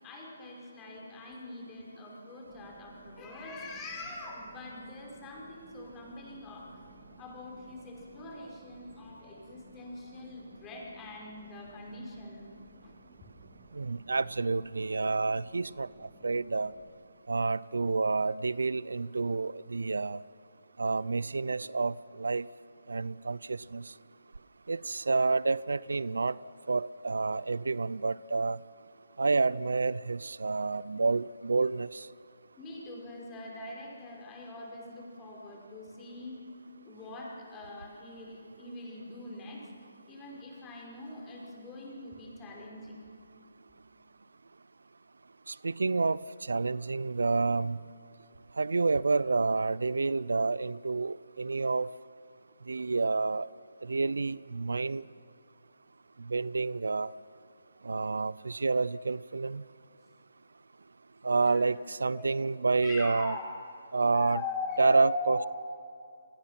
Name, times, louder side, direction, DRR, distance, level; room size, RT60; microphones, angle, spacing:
voice 1, 0.0-6.8 7.2-12.5 12.8-12.9 32.6-36.4 36.8-39.7 40.1-43.0 61.4-61.7 62.1-62.3 62.8-63.6 64.1-65.5, left 3 dB, 15° left, -2 dB, 5.4 m, -42 dB
sound 1, 2.4-16.9, right 3 dB, 25° right, 3.6 m, -57 dB
voice 2, 13.7-16.7 17.3-20.2 20.8-22.5 22.9-23.9 24.7-26.4 26.7-28.6 29.2-32.1 45.5-47.8 48.6-51.9 52.7-53.5 53.8-55.0 56.2-57.1 57.8-59.6 61.2-63.4 63.9-64.4 64.8-65.5, right 3 dB, 85° right, 21 dB, 0.5 m, -29 dB
29.5 x 20.5 x 5.9 m, 2.6 s
hypercardioid pair, 155°, 0 cm